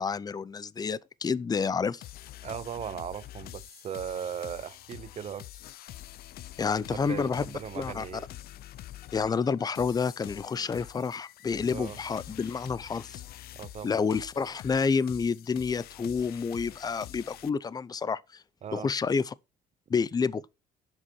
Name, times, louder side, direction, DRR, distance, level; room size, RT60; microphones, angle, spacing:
voice 1, 0.0-2.0 6.6-7.4 7.8-8.0 9.1-13.2 13.8-18.4 18.7-19.3 19.9-20.4, left 5 dB, 25° left, 0.6 m, -29 dB
sound 1, 2.0-17.5, left 14 dB, 65° left, 0.6 m, -46 dB
voice 2, 2.4-5.5 6.9-8.2 11.7-12.0 13.5-13.9 18.6-18.9, right 8 dB, 40° right, 0.7 m, -38 dB
11.0 x 7.5 x 4.4 m
cardioid pair, 110°, 17 cm